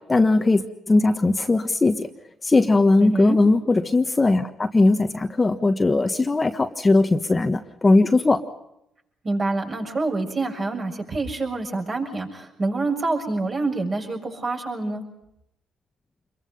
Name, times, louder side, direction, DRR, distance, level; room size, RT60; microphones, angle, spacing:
voice 1, 0.1-2.1 2.4-8.4, left 2 dB, 25° left, 6 dB, 1.4 m, -19 dB
voice 2, 3.0-3.4 9.2-15.0, right 3 dB, 40° right, 1 dB, 6.9 m, -26 dB
26.5 x 22.5 x 5.5 m, 0.82 s
cardioid pair, 90°, 0 cm